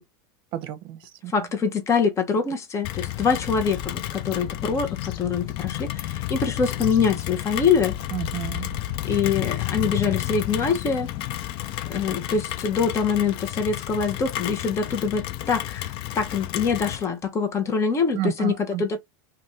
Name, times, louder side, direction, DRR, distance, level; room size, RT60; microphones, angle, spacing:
voice 1, 0.5-1.3 8.1-8.7 18.1-18.8, right 15 dB, 50° right, 0.7 m, -31 dB
voice 2, 1.3-8.0 9.0-11.1 11.9-15.9 16.2-19.0, left 5 dB, 25° left, 0.8 m, -24 dB
Rain, 2.8-17.0, left 14 dB, 50° left, 0.4 m, -31 dB
2.6 x 2.3 x 3.3 m
supercardioid pair, 115°, 11 cm